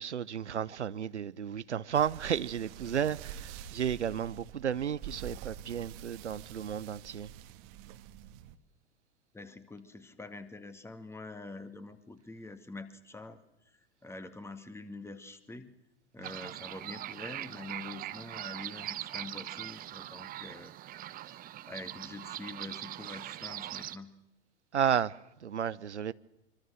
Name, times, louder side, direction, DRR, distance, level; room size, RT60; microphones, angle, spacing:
voice 1, 0.0-7.3 24.7-26.1, right 8 dB, 75° right, 0.8 m, -33 dB
sound 1, 1.9-8.6, right 9 dB, 40° right, 1.7 m, -47 dB
voice 2, 9.3-13.4 13.7-15.7 16.1-24.1, left 2 dB, 5° left, 2.0 m, -46 dB
sound 2, 16.2-24.0, right 13 dB, 25° right, 0.9 m, -41 dB
25.0 x 25.0 x 6.3 m
figure-of-eight pair, 95°, 35 cm